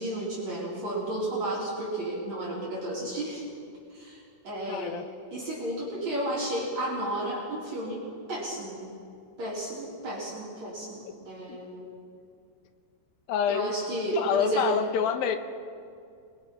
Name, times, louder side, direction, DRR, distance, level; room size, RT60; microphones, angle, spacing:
voice 1, 0.0-3.4 3.9-4.2 4.4-5.0 5.3-8.0 8.3-8.8 9.4-11.8 13.5-14.8, right 1 dB, 45° right, -6 dB, 5.5 m, -32 dB
voice 2, 4.7-5.0 11.5-11.6 13.3-13.7 14.1-15.4, left 8 dB, 75° left, 8 dB, 2.6 m, -27 dB
28.5 x 22.0 x 5.7 m, 2.4 s
omnidirectional pair, 4.6 m